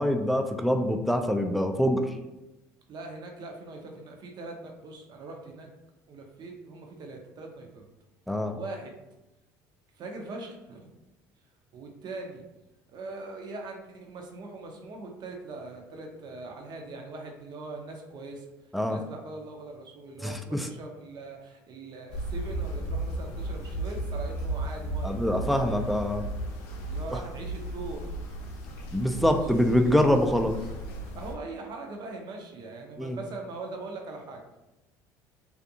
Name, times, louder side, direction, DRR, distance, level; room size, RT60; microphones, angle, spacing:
voice 1, 0.0-2.1 8.3-8.6 18.7-19.0 20.2-20.7 25.0-26.3 28.9-30.6 33.0-33.2, equal, ahead, 5 dB, 0.3 m, -25 dB
voice 2, 2.9-5.7 6.1-7.9 8.3-8.9 9.9-10.9 11.7-12.4 12.9-18.5 18.9-25.2 25.4-25.9 26.9-28.1 29.8-30.5 31.1-34.6, right 3 dB, 50° right, 2 dB, 0.6 m, -41 dB
sound 1, 22.1-31.3, right 1 dB, 85° left, 0.5 m, -35 dB
2.5 x 2.4 x 2.7 m, 0.99 s
supercardioid pair, 75°, 9 cm